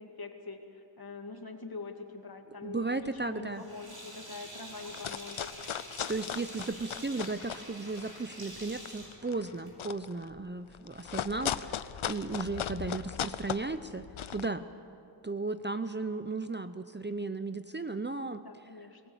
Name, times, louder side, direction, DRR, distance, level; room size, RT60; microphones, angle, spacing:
voice 1, 0.0-5.5 18.0-19.0, left 3 dB, 50° left, 4 dB, 2.3 m, -44 dB
voice 2, 2.6-3.6 6.1-11.8 12.0-14.1 14.3-14.7 15.2-18.4, right 3 dB, 25° right, 10 dB, 0.7 m, -35 dB
sound 1, 3.0-3.3 3.7-3.8 4.0-4.4 4.8-7.7 8.0-14.5, left 9 dB, 90° left, 0.7 m, -38 dB
Sink (filling or washing), 3.5-9.9, right 1 dB, 50° right, 6.3 m, -47 dB
26.5 x 18.0 x 7.2 m, 2.5 s
wide cardioid pair, 65°, 47 cm